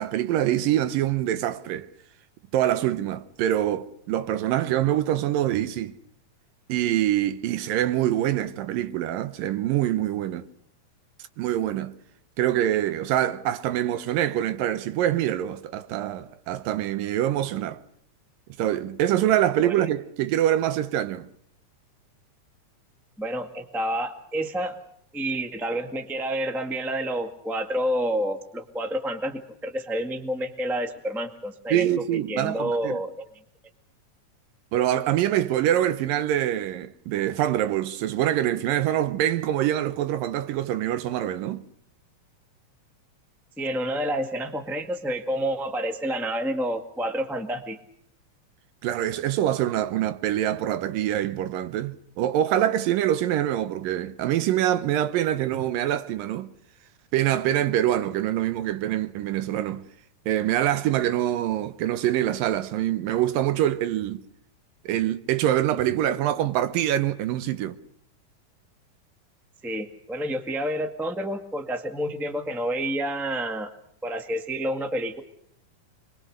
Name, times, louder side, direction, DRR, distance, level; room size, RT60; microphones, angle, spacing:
voice 1, 0.0-1.9 2.5-6.0 6.7-10.4 11.4-11.9 12.4-17.8 18.6-21.3 31.7-33.0 34.7-41.6 48.8-56.5 57.1-59.9 60.3-64.2 64.9-67.8, right 12 dB, 85° right, 2.7 m, -25 dB
voice 2, 23.2-24.7 25.1-33.3 43.6-47.8 69.6-73.7 74.0-75.2, right 1 dB, ahead, 0.7 m, -29 dB
26.5 x 22.5 x 6.6 m
omnidirectional pair, 3.9 m